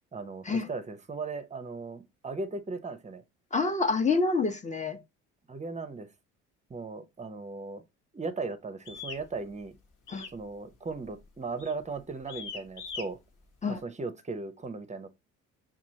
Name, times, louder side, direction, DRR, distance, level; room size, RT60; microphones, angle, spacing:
voice 1, 0.1-3.2 5.5-6.1 6.7-7.8 8.1-9.7 10.3-13.2 13.7-15.1, right 3 dB, 20° right, 0.7 m, -37 dB
voice 2, 3.5-5.0 10.1-10.3 13.6-13.8, left 4 dB, 20° left, 0.9 m, -27 dB
sound 1, 8.8-9.2 10.1-10.4 10.7-11.0 11.6-11.8 12.3-13.1, left 5 dB, 55° left, 1.2 m, -40 dB
6.0 x 2.4 x 2.8 m
hypercardioid pair, 65°, 36 cm